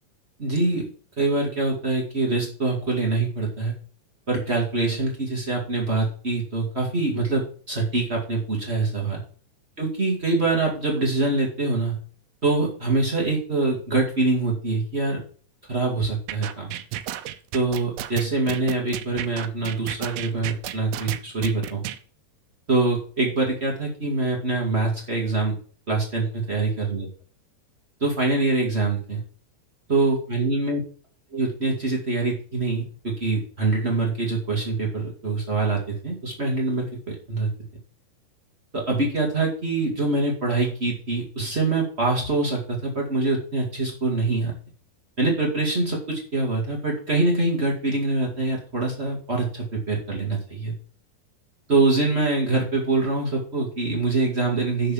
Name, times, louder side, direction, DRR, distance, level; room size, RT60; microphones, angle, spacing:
voice 1, 0.4-0.9 1.2-3.7 4.3-9.2 9.8-12.0 12.4-15.2 15.7-16.7 17.5-21.8 22.7-25.5 25.9-27.1 28.0-29.2 29.9-30.8 31.3-37.5 38.7-44.5 45.2-50.7 51.7-54.9, right 3 dB, 35° right, -1 dB, 0.9 m, -24 dB
sound 1, 16.3-22.0, right 13 dB, 80° right, 2.3 m, -32 dB
6.7 x 6.5 x 7.3 m, 0.43 s
omnidirectional pair, 4.9 m